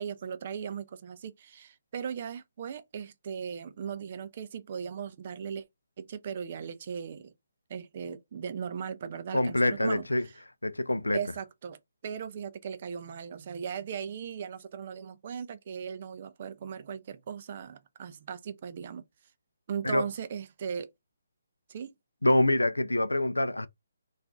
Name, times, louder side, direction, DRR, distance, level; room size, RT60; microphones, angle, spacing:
voice 1, 0.0-5.6 6.0-7.3 7.7-10.3 11.1-11.8 12.0-19.0 19.7-20.9 21.7-21.9, right 7 dB, 40° right, 0.4 m, -38 dB
voice 2, 9.3-10.3 10.6-11.2 19.8-20.1 22.2-23.7, left 1 dB, 85° left, 0.3 m, -25 dB
2.4 x 2.3 x 3.6 m
figure-of-eight pair, 140°, 0 cm